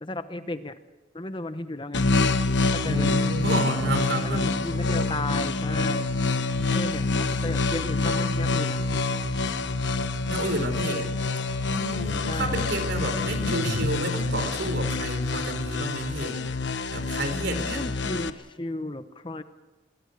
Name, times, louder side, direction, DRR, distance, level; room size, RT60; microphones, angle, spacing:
voice 1, 0.0-0.8 1.1-2.1 2.7-3.1 4.2-6.1 6.7-8.8 12.3-12.7 17.3-19.4, left 2 dB, 25° left, 10 dB, 0.9 m, -34 dB
sound 1, 1.9-18.3, left 3 dB, 85° left, 1.1 m, -26 dB
voice 2, 2.8-4.5 10.3-11.1 11.7-16.4 16.9-17.8, right 1 dB, 75° right, 8 dB, 4.1 m, -30 dB
24.5 x 21.5 x 6.6 m, 1.2 s
head